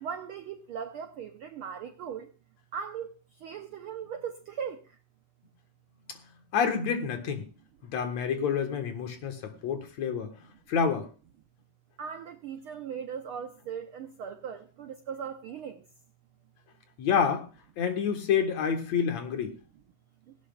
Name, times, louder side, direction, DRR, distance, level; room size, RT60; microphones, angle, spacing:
voice 1, 0.0-2.3 2.7-3.1 3.4-4.8 12.0-15.8, right 7 dB, 85° right, 1.2 m, -38 dB
voice 2, 6.5-7.5 7.8-10.3 10.7-11.1 17.0-17.5 17.8-19.5, left 7 dB, 65° left, 2.6 m, -28 dB
17.5 x 16.0 x 2.4 m
omnidirectional pair, 3.5 m